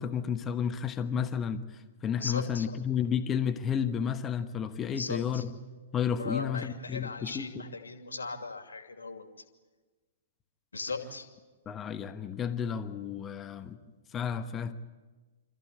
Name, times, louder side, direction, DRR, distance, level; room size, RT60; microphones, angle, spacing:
voice 1, 0.0-5.5 5.9-7.6 11.7-13.8 14.1-14.7, left 7 dB, 20° left, 1.2 m, -32 dB
voice 2, 2.2-2.8 4.9-5.4 6.2-9.3 10.7-11.3, left 4 dB, 75° left, 2.5 m, -38 dB
27.0 x 14.5 x 9.9 m
figure-of-eight pair, 110°, 0 cm